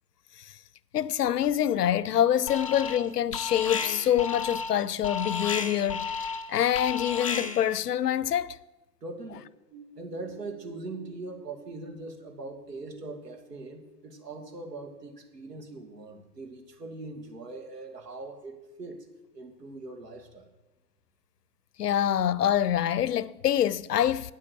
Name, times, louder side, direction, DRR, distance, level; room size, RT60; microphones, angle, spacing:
voice 1, 0.9-6.1 6.5-8.6 21.8-24.3, left 10 dB, 75° left, 0.7 m, -25 dB
Alarm, 2.5-3.1 3.3-7.8, left 5 dB, 25° left, 0.3 m, -33 dB
voice 2, 9.0-9.4 10.0-19.1 19.3-20.5, right 2 dB, 80° right, 2.4 m, -41 dB
sound 1, 9.7-15.2, right 5 dB, 40° right, 4.9 m, -55 dB
9.3 x 8.4 x 6.8 m
figure-of-eight pair, 120°, 48 cm